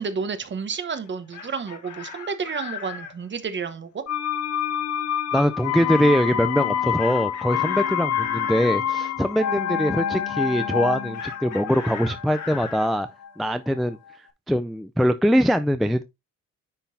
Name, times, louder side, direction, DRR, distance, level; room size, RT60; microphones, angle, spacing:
voice 1, 0.0-4.0, right 5 dB, 40° right, 1.0 m, -30 dB
Chicken rooster, 1.1-3.1 7.0-8.7 11.1-12.9, left 7 dB, 75° left, 1.4 m, -37 dB
sound 1, 4.1-13.8 14.1-14.2, left 9 dB, 60° left, 0.7 m, -27 dB
voice 2, 5.3-13.1 13.4-14.0 14.5-16.0, equal, ahead, 0.3 m, -22 dB
10.0 x 3.8 x 2.6 m
cardioid pair, 90°, 30 cm